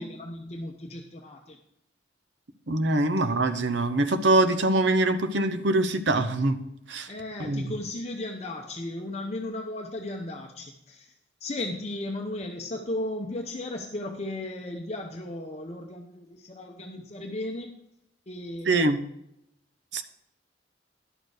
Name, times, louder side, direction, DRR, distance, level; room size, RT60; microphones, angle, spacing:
voice 1, 0.0-1.6 7.1-17.7 18.3-19.1, left 1 dB, 35° left, 2 dB, 0.7 m, -35 dB
voice 2, 2.7-6.6 6.9-7.1 7.5-7.6 18.7-19.0 19.9-20.0, right 2 dB, 70° right, 10 dB, 0.8 m, -23 dB
11.0 x 6.6 x 4.8 m, 0.78 s
head